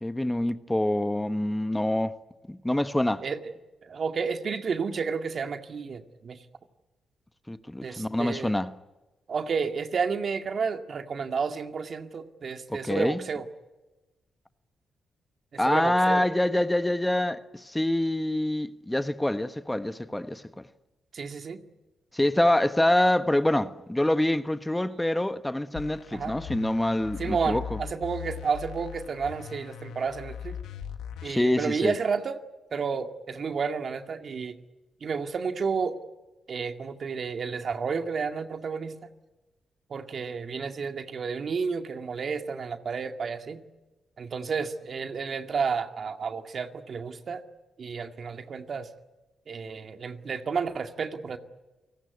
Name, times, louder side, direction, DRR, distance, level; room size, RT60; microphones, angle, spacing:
voice 1, 0.0-2.1 2.5-3.3 7.5-8.7 12.7-13.2 15.6-20.6 22.1-27.8 31.2-31.9, left 1 dB, 10° left, 1.2 m, -26 dB
voice 2, 3.8-6.4 7.8-8.5 9.3-13.5 15.7-16.2 21.1-21.6 26.1-26.3 27.2-30.6 31.2-32.4 32.7-34.6 35.0-36.0 36.5-39.0 39.9-43.6 44.2-47.4 47.8-48.9 49.5-51.4, right 5 dB, 55° right, 2.1 m, -31 dB
sound 1, 25.8-31.3, left 8 dB, 85° left, 1.7 m, -39 dB
29.0 x 18.5 x 9.6 m
supercardioid pair, 60°, 0 cm